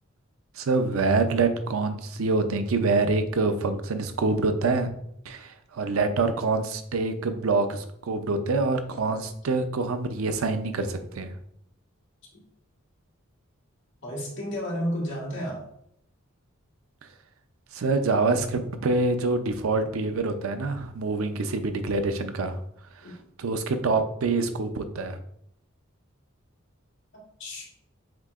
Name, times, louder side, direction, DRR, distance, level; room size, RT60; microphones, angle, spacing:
voice 1, 0.6-4.9 5.3-11.3 17.7-22.6 23.4-25.2, right 3 dB, 85° right, 8 dB, 0.5 m, -26 dB
voice 2, 14.0-15.6 23.0-23.2 27.4-27.7, equal, 60° left, -3 dB, 1.6 m, -31 dB
7.3 x 2.7 x 2.4 m, 0.72 s
head